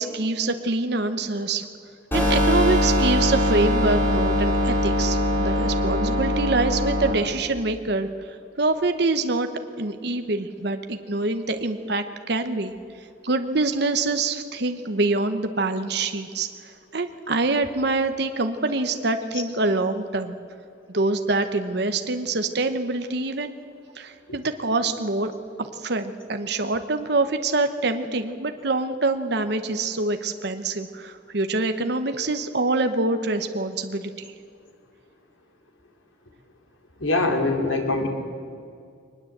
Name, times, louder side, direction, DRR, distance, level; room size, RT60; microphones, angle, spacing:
voice 1, 0.0-1.7 2.1-9.5 9.8-12.7 13.2-20.3 20.9-23.6 23.9-25.3 25.6-34.3, right 3 dB, 55° right, 8 dB, 1.0 m, -25 dB
sound 1, 2.1-7.1, left 1 dB, 10° left, 5.0 m, -22 dB
voice 2, 37.0-38.1, left 2 dB, 85° left, 3 dB, 3.0 m, -23 dB
21.5 x 20.0 x 8.0 m, 2.3 s
head